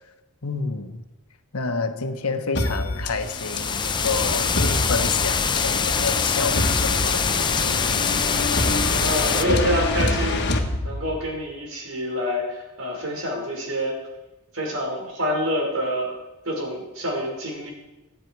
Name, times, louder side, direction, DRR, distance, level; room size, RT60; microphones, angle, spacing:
voice 1, 0.4-1.0 1.5-8.1, left 4 dB, 85° left, 1.3 m, -29 dB
sound 1, 2.5-11.4, left 2 dB, 50° left, 1.6 m, -27 dB
sound 2, 3.2-9.4, left 5 dB, 20° left, 0.6 m, -24 dB
voice 2, 8.9-14.0 14.5-16.2 16.4-17.7, equal, 65° right, 5.4 m, -27 dB
26.5 x 9.5 x 4.8 m
head